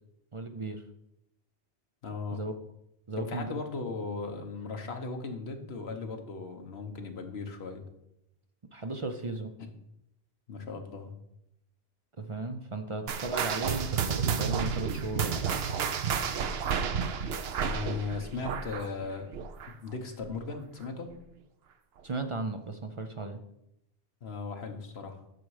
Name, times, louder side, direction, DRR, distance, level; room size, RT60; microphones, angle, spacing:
voice 1, 0.3-0.8 2.3-2.5 3.1-3.6 8.7-9.5 12.2-15.6 22.0-23.4, right 3 dB, 35° right, 7 dB, 0.5 m, -36 dB
voice 2, 2.0-2.4 3.2-7.9 9.6-9.7 10.5-11.1 17.6-19.3 19.7-21.1 24.2-25.2, left 4 dB, 70° left, 5 dB, 1.3 m, -37 dB
sound 1, 13.1-19.9 20.2-20.5 21.1-21.2 22.0-22.1, right 7 dB, 70° right, 0.9 m, -31 dB
8.8 x 6.3 x 4.8 m, 0.83 s
omnidirectional pair, 1.1 m